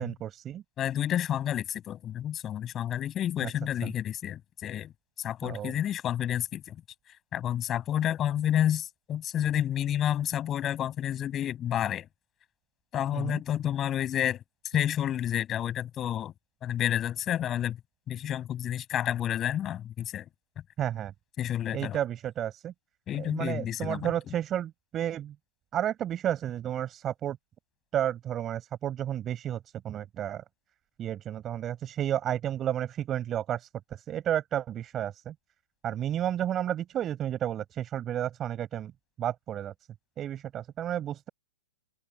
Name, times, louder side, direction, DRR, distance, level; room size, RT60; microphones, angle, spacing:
voice 1, 0.0-0.6 3.4-3.5 5.4-5.7 13.1-13.4 20.8-21.1 21.7-22.7 23.2-25.3 25.7-27.4 27.9-29.6 29.8-30.4 31.0-33.7 34.1-35.3 35.8-38.9 39.2-39.7 40.2-41.3, right 11 dB, 20° right, 7.0 m, -31 dB
voice 2, 0.8-4.9 5.2-6.8 7.3-12.1 12.9-14.4 14.7-16.3 16.6-17.8 18.1-20.3 21.4-22.0 23.1-24.1, left 11 dB, 20° left, 8.0 m, -30 dB
open air
hypercardioid pair, 150°, 0 cm